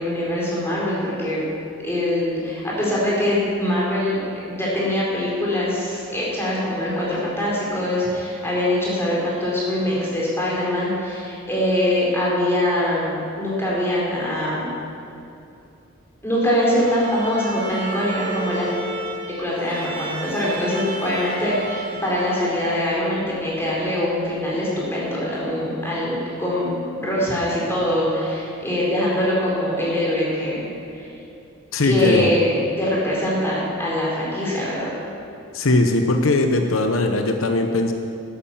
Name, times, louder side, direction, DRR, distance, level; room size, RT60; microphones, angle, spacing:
voice 1, 0.0-1.4 1.8-4.2 4.5-14.7 16.2-18.7 19.4-26.7 27.0-30.7 30.9-31.1 31.8-32.5 32.8-34.9, left 1 dB, 10° left, -6 dB, 4.4 m, -23 dB
Bowed string instrument, 16.7-23.0, right 2 dB, 40° right, 2.7 m, -33 dB
voice 2, 31.7-32.3 35.5-37.9, left 2 dB, 80° left, 5 dB, 0.9 m, -19 dB
13.0 x 11.5 x 7.3 m, 2.7 s
head